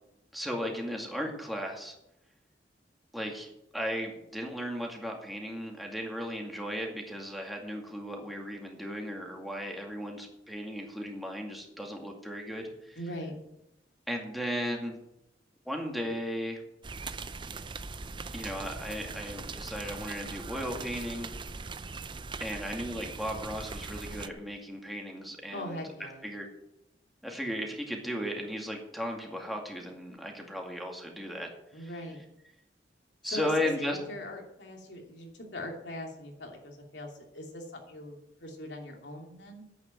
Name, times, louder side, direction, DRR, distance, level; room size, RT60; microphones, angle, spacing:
voice 1, 0.3-1.9 3.1-13.0 14.1-15.0 15.7-16.6 18.3-21.3 22.4-26.5 27.2-31.9 33.2-34.0, equal, ahead, 0 dB, 2.3 m, -36 dB
voice 2, 13.0-13.3 25.5-26.2 31.7-32.2 33.2-39.6, left 1 dB, 90° left, 1 dB, 2.8 m, -41 dB
sound 1, 16.8-24.3, right 4 dB, 30° right, 0.5 m, -40 dB
10.0 x 8.7 x 7.7 m, 0.84 s
head